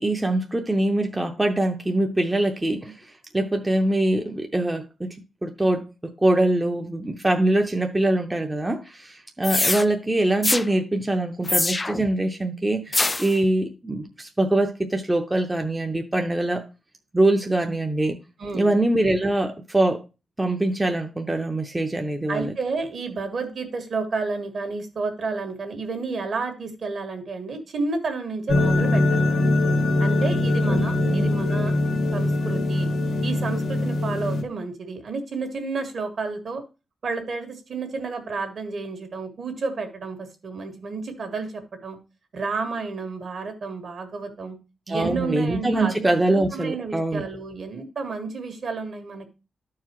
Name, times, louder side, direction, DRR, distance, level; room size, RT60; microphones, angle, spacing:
voice 1, 0.0-3.1 3.3-5.2 5.4-5.8 6.2-16.6 17.1-18.2 18.5-20.0 20.4-22.5 30.7-31.2 44.9-47.2, right 1 dB, 15° right, 0.6 m, -23 dB
sound 1, 9.4-9.8 10.4-10.7 11.5-12.1 12.9-13.3, left 2 dB, 20° left, 0.3 m, -23 dB
voice 2, 22.3-29.5 30.0-31.7 32.1-32.9 33.2-36.6 37.0-42.0 42.3-44.6 44.9-46.0 46.5-49.3, right 4 dB, 55° right, 1.7 m, -31 dB
sound 2, 28.5-34.4, left 2 dB, 80° left, 1.1 m, -22 dB
13.0 x 4.7 x 2.9 m
wide cardioid pair, 140°, 0 cm